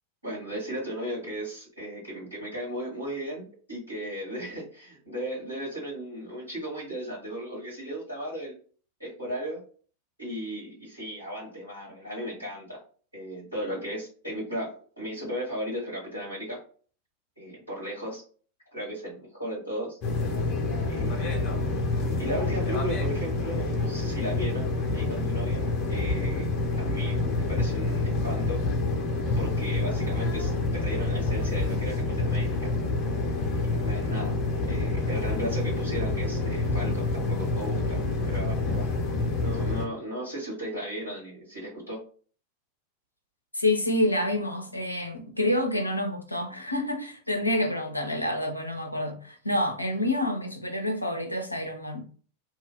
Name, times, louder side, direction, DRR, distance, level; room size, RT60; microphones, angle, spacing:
voice 1, 0.2-8.5 9.0-9.6 10.2-12.8 13.1-16.6 17.4-18.2 18.7-20.0 20.9-21.8 22.2-24.7 24.9-26.5 26.8-28.6 29.4-32.7 33.5-34.4 34.7-38.9 39.4-42.0, equal, 85° right, 1.3 m, -36 dB
sound 1, 20.0-39.9, left 2 dB, 35° left, 0.6 m, -27 dB
voice 2, 43.5-52.0, left 1 dB, 85° left, 0.4 m, -28 dB
2.6 x 2.0 x 2.3 m
figure-of-eight pair, 90°, 0 cm